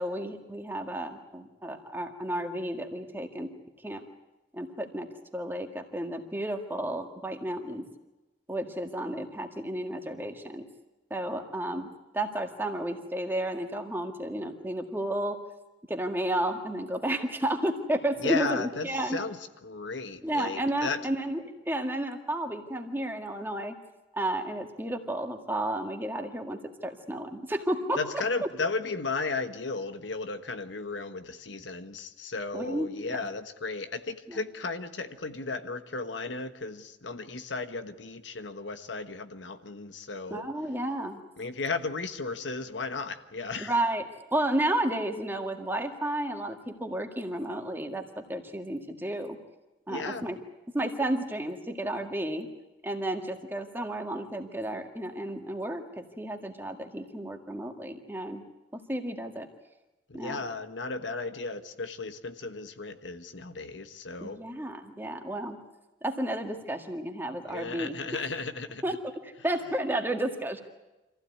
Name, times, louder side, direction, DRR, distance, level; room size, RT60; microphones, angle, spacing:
voice 1, 0.0-3.5 3.8-4.0 4.5-5.1 5.3-7.9 8.5-10.6 11.1-11.9 12.1-15.4 15.9-19.2 20.2-23.7 24.1-28.0 32.5-33.2 34.3-34.4 40.3-41.2 43.6-44.0 44.3-49.4 49.9-50.4 50.7-52.5 52.8-58.4 58.7-59.5 60.1-60.4 64.2-65.6 66.0-68.2 68.8-69.0 69.2-70.6, right 1 dB, 10° right, 4 dB, 1.8 m, -32 dB
voice 2, 18.2-21.0 28.0-40.4 41.4-43.8 49.9-50.3 60.1-64.4 67.5-69.0, left 3 dB, 90° left, 9 dB, 1.3 m, -35 dB
25.5 x 15.5 x 9.4 m, 1.0 s
head